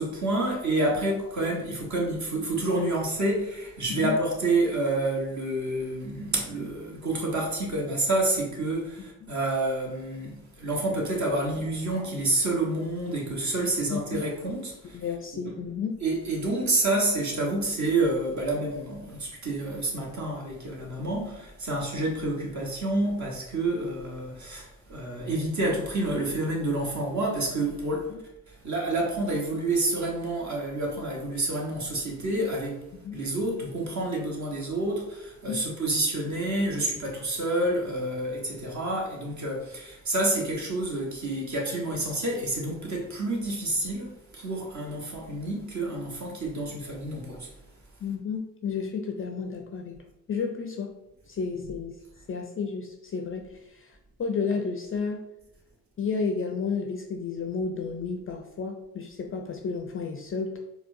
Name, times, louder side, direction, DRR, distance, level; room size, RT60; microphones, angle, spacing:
voice 1, 0.0-15.0 15.3-15.5 16.0-28.1 28.5-47.5, right 2 dB, 40° right, 1.2 m, -28 dB
voice 2, 13.9-14.2 14.9-15.9 28.1-28.2 33.0-33.2 35.5-35.6 48.0-49.9 50.3-50.9 51.3-51.9 52.3-53.9 54.2-55.2 56.0-60.6, left 5 dB, 30° left, 0.4 m, -32 dB
4.3 x 2.2 x 2.6 m
hypercardioid pair, 40°, 42 cm